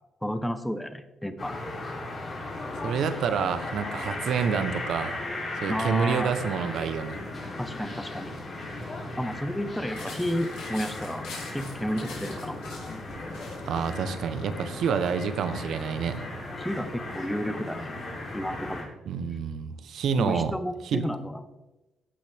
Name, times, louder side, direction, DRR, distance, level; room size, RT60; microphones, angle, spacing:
voice 1, 0.2-1.6 5.7-6.3 7.6-8.3 9.2-11.3 11.5-12.6 16.6-18.0 18.3-18.9 20.2-21.4, equal, 5° left, 10 dB, 1.0 m, -31 dB
sound 1, 1.4-18.8, left 2 dB, 40° left, 3.4 m, -36 dB
voice 2, 2.8-5.2 5.6-7.2 13.6-16.2 19.1-20.5 20.8-21.0, right 6 dB, 70° right, 11 dB, 0.9 m, -28 dB
sound 2, 9.9-13.9, left 3 dB, 90° left, 3.9 m, -44 dB
16.0 x 6.2 x 3.5 m, 1.0 s
cardioid pair, 90°, 0 cm